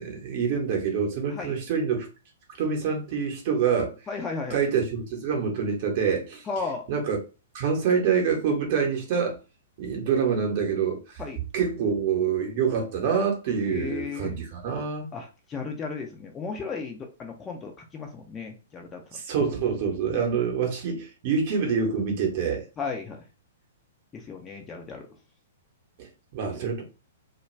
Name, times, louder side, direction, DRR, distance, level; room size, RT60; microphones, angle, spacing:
voice 1, 0.0-2.1 2.6-3.9 4.5-6.4 6.9-7.2 7.5-9.4 9.8-11.2 11.5-15.1 19.1-22.6 26.0-26.1 26.3-26.8, right 6 dB, 40° right, 0.8 m, -26 dB
voice 2, 4.1-4.6 6.5-6.8 11.2-11.4 13.7-14.3 15.1-19.0 20.1-20.4 22.8-23.2 24.1-25.1, left 4 dB, 20° left, 0.4 m, -35 dB
2.3 x 2.2 x 3.0 m
figure-of-eight pair, 110°, 0 cm